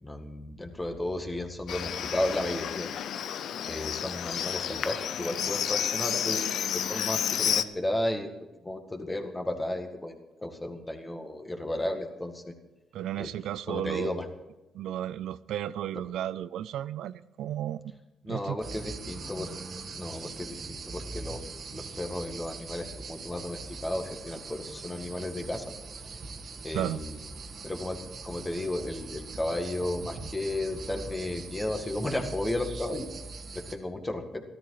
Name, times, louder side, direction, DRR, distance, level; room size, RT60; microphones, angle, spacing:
voice 1, 0.0-2.9 3.7-6.5 6.7-8.3 8.6-12.5 13.2-13.3 13.7-14.3 18.2-19.5 19.9-21.4 21.7-25.6 26.6-27.2 27.6-33.1 33.5-34.4, left 1 dB, 15° left, 2.0 m, -33 dB
Livestock farm animals working animals, 1.7-7.6, left 9 dB, 70° left, 0.6 m, -31 dB
voice 2, 12.9-14.2 14.7-17.9 18.3-18.6 26.7-27.0, right 11 dB, 80° right, 0.4 m, -33 dB
sound 1, 18.6-33.7, right 4 dB, 50° right, 1.7 m, -42 dB
14.0 x 13.0 x 4.9 m
cardioid pair, 90°, 0 cm